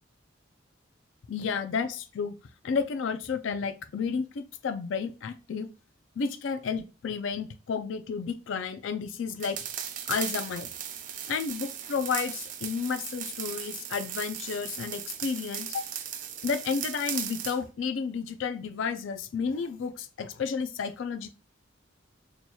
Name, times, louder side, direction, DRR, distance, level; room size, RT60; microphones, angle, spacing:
voice 1, 1.3-2.4 2.6-5.7 6.2-9.6 10.1-10.7 11.3-15.8 16.4-21.3, left 5 dB, 75° left, 8 dB, 0.4 m, -31 dB
sound 1, 9.4-17.6, right 9 dB, 40° right, 0.3 m, -37 dB
2.9 x 2.3 x 4.1 m, 0.34 s
head